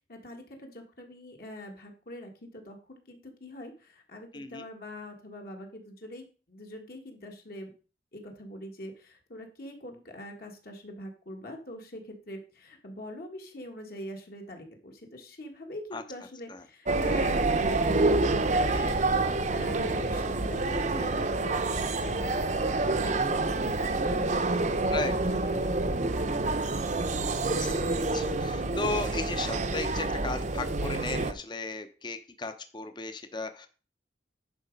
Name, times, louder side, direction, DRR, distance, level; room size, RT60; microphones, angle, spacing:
voice 1, 0.1-7.7 8.1-22.3 22.7-25.7 26.1-26.8, left 1 dB, 55° left, 2 dB, 1.7 m, -44 dB
sound 1, 16.9-31.3, right 2 dB, 45° right, 0.7 m, -27 dB
voice 2, 24.9-25.4 27.5-33.7, left 3 dB, 25° left, 9 dB, 0.7 m, -36 dB
10.5 x 4.9 x 5.2 m, 0.37 s
head